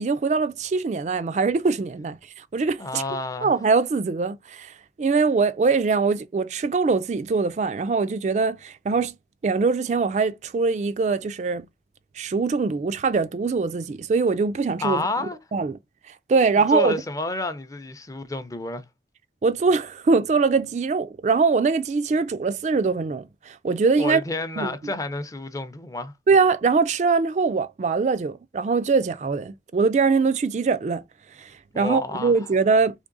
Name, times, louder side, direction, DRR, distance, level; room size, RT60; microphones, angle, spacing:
voice 1, 0.0-3.0 3.4-9.1 9.4-11.7 12.2-15.1 15.5-15.8 16.1-16.9 19.4-24.2 24.6-24.7 26.3-31.0 31.4-33.1, right 4 dB, 40° right, 0.3 m, -22 dB
voice 2, 2.8-3.5 14.8-15.4 16.5-18.8 24.0-26.1 31.7-32.3, left 2 dB, 20° left, 0.5 m, -30 dB
3.6 x 3.3 x 3.8 m
head